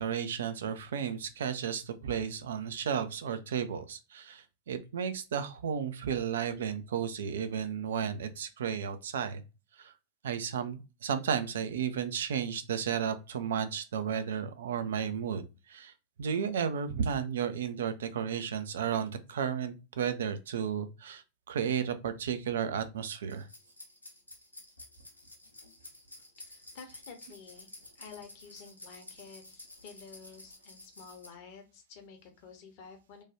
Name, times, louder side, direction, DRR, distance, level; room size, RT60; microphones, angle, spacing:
voice 1, 0.0-9.4 9.8-9.9 10.2-15.9 16.2-23.5, right 8 dB, 60° right, 0.3 m, -33 dB
sound 1, 23.3-31.3, left 1 dB, 85° left, 0.7 m, -52 dB
voice 2, 26.4-27.7 27.9-33.2, left 5 dB, 45° left, 0.8 m, -51 dB
3.0 x 2.2 x 2.7 m
figure-of-eight pair, 90°, 0 cm